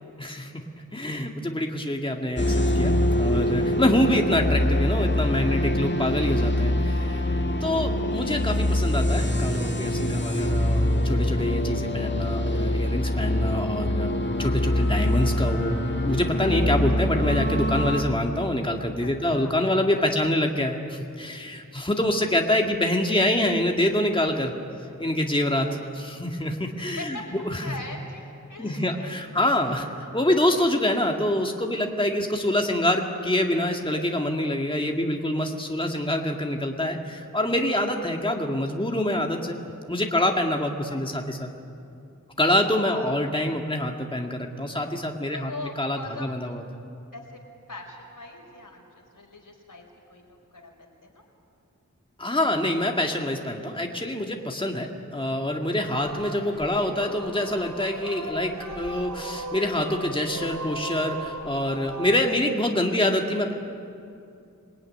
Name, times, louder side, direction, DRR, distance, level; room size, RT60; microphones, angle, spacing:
voice 1, 0.2-0.5 0.9-14.1 14.4-15.8 16.1-24.5 25.0-27.8 28.6-29.9 30.1-39.6 39.9-41.5 42.4-45.5 45.8-46.6 52.2-63.5, left 1 dB, 15° left, 2 dB, 1.9 m, -26 dB
sound 1, 2.4-18.0, left 1 dB, 35° left, 2.1 m, -24 dB
voice 2, 26.8-27.2 27.6-29.8 30.5-30.7 40.9-41.0 42.5-43.2 43.5-43.6 45.3-46.3 47.1-47.4 47.7-49.8 50.1-51.2, left 2 dB, 75° left, 1 dB, 4.9 m, -41 dB
Singing, 55.8-62.2, right 1 dB, 75° right, 3.2 m, -37 dB
26.5 x 20.0 x 9.9 m, 2.6 s
wide cardioid pair, 65°, 32 cm